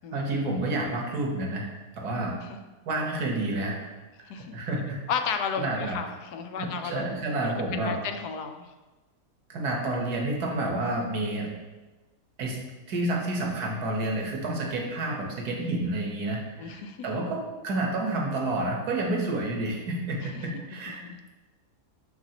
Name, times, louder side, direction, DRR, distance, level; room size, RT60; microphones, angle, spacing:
voice 1, 0.1-1.7 2.0-2.4 2.8-3.8 4.4-5.0 5.5-6.0 6.6-7.9 9.5-11.5 12.4-12.6 12.9-21.0, right 2 dB, 75° right, 0 dB, 1.7 m, -29 dB
voice 2, 5.1-8.7 16.6-17.1 20.3-20.4 21.0-21.2, left 6 dB, 80° left, 6 dB, 1.2 m, -33 dB
11.5 x 4.0 x 2.9 m, 1.2 s
omnidirectional pair, 1.7 m